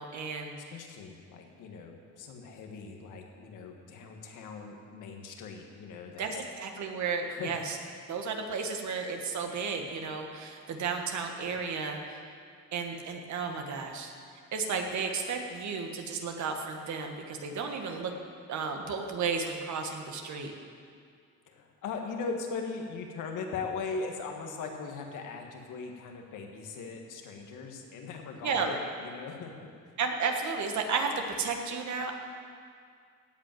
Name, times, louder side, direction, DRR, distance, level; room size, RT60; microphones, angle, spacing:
voice 1, 0.0-0.5 6.2-7.8 8.1-12.2 12.7-14.1 14.5-18.1 18.5-20.5 28.4-28.8 30.0-32.1, right 5 dB, 70° right, 3 dB, 1.7 m, -33 dB
voice 2, 0.7-6.3 7.3-7.6 21.5-29.7, left 4 dB, 85° left, 2 dB, 1.7 m, -39 dB
16.0 x 5.5 x 9.2 m, 2.2 s
cardioid pair, 90°, 30 cm